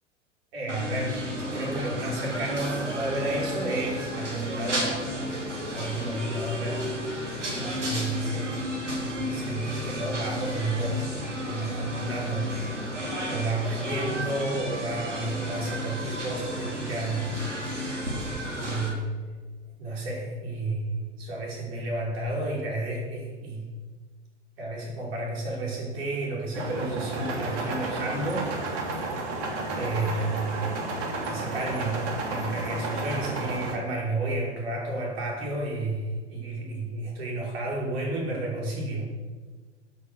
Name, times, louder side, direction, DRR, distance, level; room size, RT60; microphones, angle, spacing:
voice 1, 0.5-1.2 1.5-5.0 5.7-6.8 7.5-8.6 9.0-11.1 11.4-13.0 13.3-17.4 18.5-19.3 19.8-23.7 24.6-29.1 29.7-30.8 31.2-39.1, right 2 dB, 60° right, -2 dB, 5.3 m, -31 dB
sound 1, 0.7-18.9, equal, 85° right, 3.9 m, -32 dB
sound 2, 26.5-33.8, right 2 dB, 40° right, 3.0 m, -32 dB
14.0 x 8.4 x 6.6 m, 1.4 s
figure-of-eight pair, 95°, 35 cm